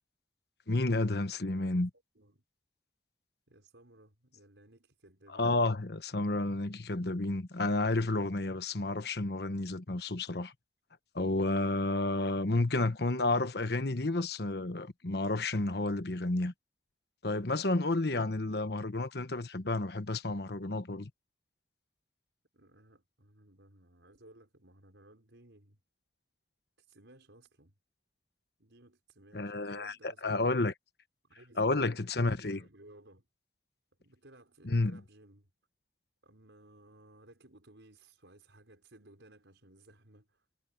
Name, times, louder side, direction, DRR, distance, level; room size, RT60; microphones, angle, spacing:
voice 1, 0.7-1.9 5.3-10.5 11.1-16.5 17.2-21.1 29.3-29.9 30.2-30.7 31.6-32.6 34.6-35.0, left 2 dB, 60° left, 1.2 m, -31 dB
voice 2, 1.5-1.8 2.2-2.4 3.5-5.7 22.5-25.8 26.8-27.7 28.6-30.5 31.2-31.9 32.2-33.3 34.0-35.5 36.2-40.5, right 1 dB, 85° right, 5.7 m, -59 dB
head